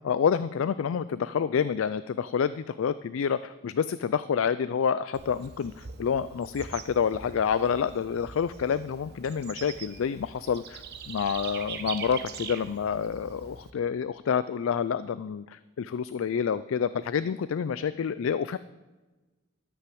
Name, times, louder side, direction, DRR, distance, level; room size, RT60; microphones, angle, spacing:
voice 1, 0.0-18.6, left 7 dB, 85° left, 15 dB, 0.4 m, -28 dB
Bird / Insect, 5.1-13.7, right 6 dB, 55° right, 0.8 m, -43 dB
13.0 x 5.8 x 7.7 m, 1.2 s
head